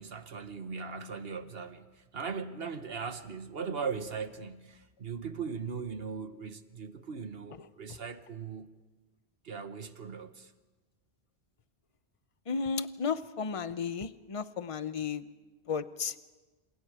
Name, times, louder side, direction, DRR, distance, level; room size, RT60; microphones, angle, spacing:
voice 1, 0.0-8.7 9.4-10.5, right 5 dB, 65° right, 1.5 m, -39 dB
voice 2, 12.5-15.3 15.7-16.1, left 5 dB, 35° left, 0.8 m, -33 dB
28.5 x 28.0 x 5.0 m
omnidirectional pair, 1.1 m